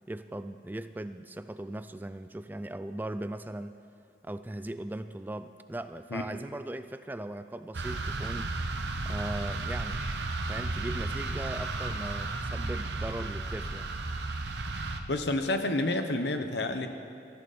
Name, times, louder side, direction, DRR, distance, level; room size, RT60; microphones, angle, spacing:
voice 1, 0.1-3.8 4.2-8.5 9.1-10.0 10.4-13.9, right 1 dB, 10° right, 11 dB, 0.3 m, -39 dB
sound 1, 7.7-15.0, right 2 dB, 80° right, 0.9 m, -33 dB
voice 2, 15.1-16.9, left 2 dB, 75° left, 7 dB, 1.1 m, -29 dB
18.5 x 14.0 x 4.3 m, 2.5 s
head